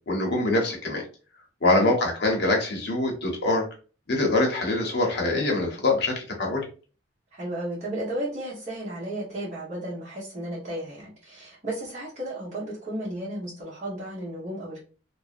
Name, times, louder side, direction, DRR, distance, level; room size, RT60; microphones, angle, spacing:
voice 1, 0.1-1.0 1.6-3.6 4.1-6.6, left 2 dB, 60° left, 0 dB, 0.8 m, -24 dB
voice 2, 7.3-14.8, right 1 dB, 35° right, -9 dB, 0.9 m, -34 dB
2.6 x 2.0 x 2.4 m, 0.37 s
head